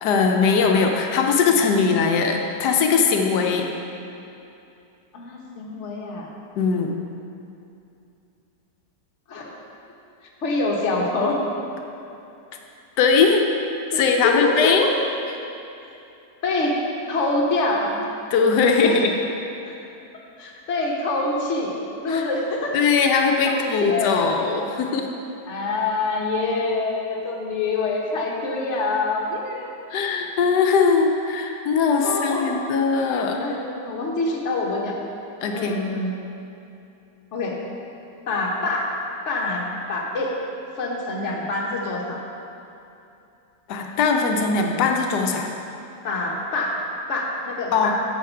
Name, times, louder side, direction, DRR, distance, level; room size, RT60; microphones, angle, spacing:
voice 1, 0.0-3.7 6.6-6.9 13.0-13.4 13.9-14.8 18.3-19.1 22.1-22.2 22.7-25.1 29.9-33.4 35.4-35.8 43.7-45.5 47.7-47.9, left 5 dB, 90° left, 2 dB, 1.3 m, -20 dB
voice 2, 5.1-6.3 9.3-9.5 10.4-11.4 13.9-14.9 16.4-16.8 17.1-18.0 18.8-19.0 19.7-19.8 20.4-21.7 22.0-22.8 23.5-24.8 25.5-29.7 32.0-32.5 33.4-35.0 35.5-36.1 37.3-37.6 38.3-38.9 39.2-40.3 40.8-42.2 46.0-46.8 47.1-47.9, left 3 dB, 50° left, -2 dB, 1.3 m, -25 dB
8.3 x 6.9 x 4.5 m, 2.7 s
omnidirectional pair, 1.7 m